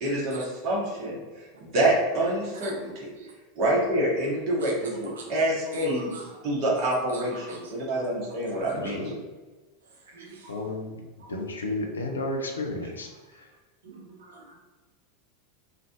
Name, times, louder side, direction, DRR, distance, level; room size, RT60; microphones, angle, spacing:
voice 1, 0.0-1.2 1.6-2.7 3.0-3.1 3.6-6.1 6.4-9.1, right 1 dB, 40° right, -5 dB, 1.2 m, -26 dB
voice 2, 2.6-3.3 4.6-4.7 5.1-6.5 7.1-7.7 8.3-8.7 10.1-10.9 11.2-11.4 12.7-13.0 13.8-14.6, right 3 dB, 65° right, 0 dB, 0.7 m, -45 dB
voice 3, 10.5-10.9 11.3-13.1, left 2 dB, 75° left, 2 dB, 0.5 m, -32 dB
3.1 x 2.5 x 2.6 m, 1.3 s
figure-of-eight pair, 85°, 0 cm